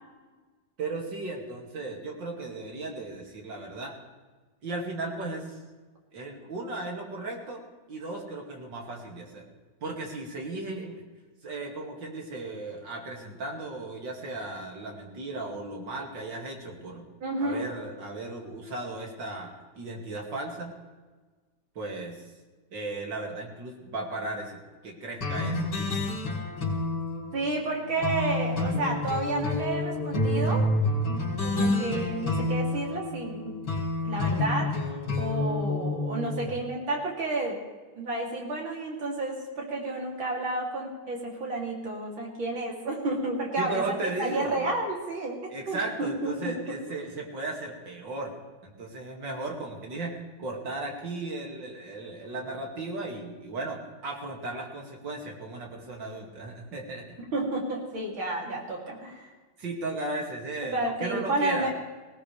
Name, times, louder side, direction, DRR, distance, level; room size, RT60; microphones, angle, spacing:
voice 1, 0.8-4.0 4.6-5.6 6.1-7.6 7.9-9.5 9.8-11.0 11.4-17.1 17.4-20.7 21.7-22.2 22.7-26.3 43.6-44.7 45.5-48.3 48.6-57.2 59.6-61.7, right 2 dB, 65° right, 0 dB, 3.0 m, -36 dB
voice 2, 17.2-17.6 27.3-30.6 31.1-33.6 34.1-37.6 38.0-45.4 45.7-46.5 57.3-59.3 60.7-61.7, right 2 dB, 85° right, -2 dB, 3.8 m, -31 dB
sound 1, 25.2-36.5, left 2 dB, 85° left, 3.8 m, -29 dB
19.0 x 18.0 x 3.4 m, 1.3 s
omnidirectional pair, 2.1 m